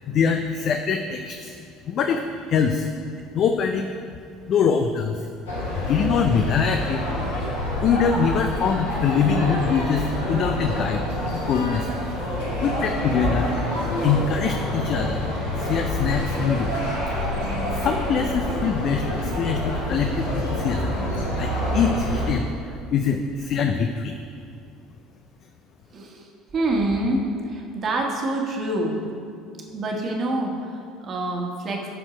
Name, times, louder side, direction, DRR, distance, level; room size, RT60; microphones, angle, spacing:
voice 1, 0.1-1.6 1.8-2.9 3.3-3.9 4.5-5.3 5.7-7.0 7.8-11.0 11.3-12.0 12.6-13.5 14.0-15.3 15.6-16.8 17.7-21.0 21.3-24.2, left 6 dB, 45° left, 6 dB, 0.4 m, -24 dB
sound 1, 5.5-22.3, left 1 dB, 80° left, 1.8 m, -27 dB
voice 2, 25.9-26.3 26.5-27.2 27.5-29.0 29.7-31.9, right 2 dB, 40° right, 0 dB, 1.5 m, -26 dB
12.0 x 4.4 x 5.0 m, 2.4 s
figure-of-eight pair, 60°, 0 cm